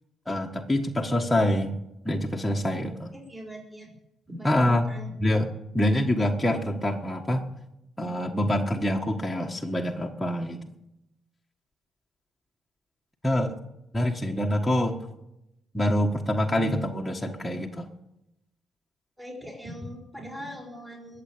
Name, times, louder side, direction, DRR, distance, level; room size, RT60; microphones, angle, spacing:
voice 1, 0.3-3.1 4.4-4.9 5.2-5.5 5.7-7.5 8.0-10.6 13.2-13.5 13.9-15.0 15.7-17.9, left 1 dB, 10° left, -1 dB, 1.4 m, -26 dB
voice 2, 3.1-3.9 4.3-5.1 5.7-5.8 19.2-21.2, equal, 10° right, -1 dB, 4.5 m, -41 dB
21.0 x 7.6 x 8.7 m, 0.89 s
cardioid pair, 90°, 0 cm